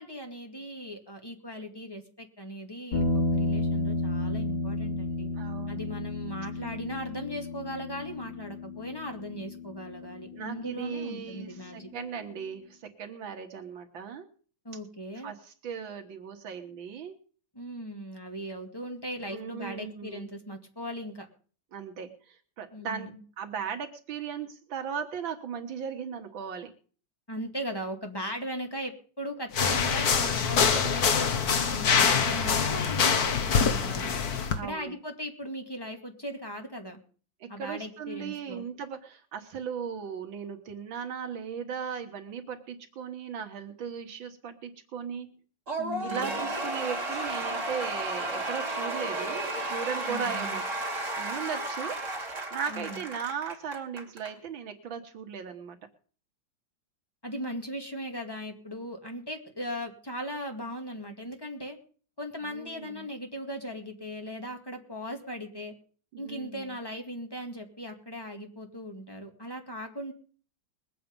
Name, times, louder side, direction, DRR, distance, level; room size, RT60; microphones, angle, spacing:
voice 1, 0.0-5.3 5.7-11.9 14.6-15.3 17.5-21.3 22.7-23.2 27.3-34.1 34.6-37.0 37.5-38.6 45.8-46.4 50.1-50.6 52.7-53.0 57.2-61.8 62.2-65.7 66.2-70.1, equal, 10° left, 3 dB, 2.2 m, -38 dB
sound 1, 2.9-11.3, left 2 dB, 85° left, 5.2 m, -32 dB
voice 2, 5.4-5.8 10.3-14.3 15.2-17.1 19.3-20.3 21.7-26.7 34.5-35.0 37.4-45.4 46.0-50.6 51.2-52.0 52.5-55.8 62.4-63.1 66.1-66.7, right 7 dB, 85° right, 5 dB, 2.1 m, -37 dB
sound 2, 29.5-34.6, left 6 dB, 55° left, 1.6 m, -25 dB
Cheering / Applause / Crowd, 45.7-54.3, right 2 dB, 40° right, 3.0 m, -33 dB
21.0 x 8.5 x 5.3 m, 0.42 s
omnidirectional pair, 2.1 m